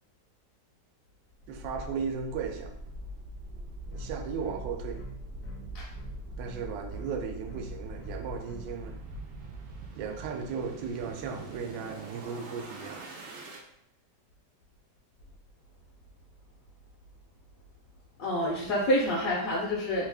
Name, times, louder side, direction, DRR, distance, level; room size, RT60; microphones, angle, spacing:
sound 1, 1.4-13.6, right 1 dB, 70° right, 0.6 m, -42 dB
voice 1, 1.5-2.7 3.9-5.1 6.4-9.0 10.0-13.1, right 6 dB, 90° right, 4 dB, 1.3 m, -36 dB
sound 2, 3.9-8.8, right 1 dB, 90° left, 1.3 m, -49 dB
voice 2, 18.2-20.1, equal, 65° left, -5 dB, 0.9 m, -28 dB
3.2 x 2.4 x 3.4 m, 0.71 s
omnidirectional pair, 1.9 m